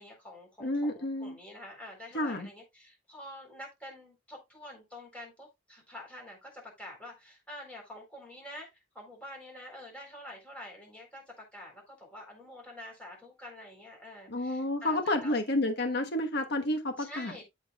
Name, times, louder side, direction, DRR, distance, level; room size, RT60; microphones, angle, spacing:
voice 1, 0.0-8.7 8.9-15.4 17.0-17.4, left 1 dB, 5° left, 4.0 m, -47 dB
voice 2, 0.6-1.4 2.1-2.5 14.3-17.4, left 1 dB, 60° left, 1.3 m, -30 dB
13.5 x 4.8 x 2.4 m
head